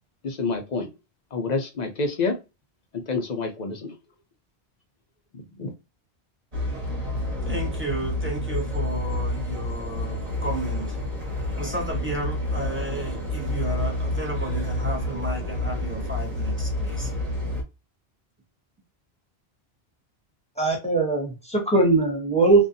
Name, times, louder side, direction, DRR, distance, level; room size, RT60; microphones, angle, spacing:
voice 1, 0.2-0.9 1.3-2.3 3.1-3.9 5.6-5.7, left 4 dB, 55° left, 0.5 m, -27 dB
sound 1, 6.5-17.6, left 1 dB, 40° right, 1.0 m, -29 dB
voice 2, 7.4-11.0 11.6-17.1, right 1 dB, 15° right, 0.5 m, -33 dB
voice 3, 20.6-22.7, right 3 dB, 5° left, 0.9 m, -20 dB
2.5 x 2.2 x 2.5 m
omnidirectional pair, 1.1 m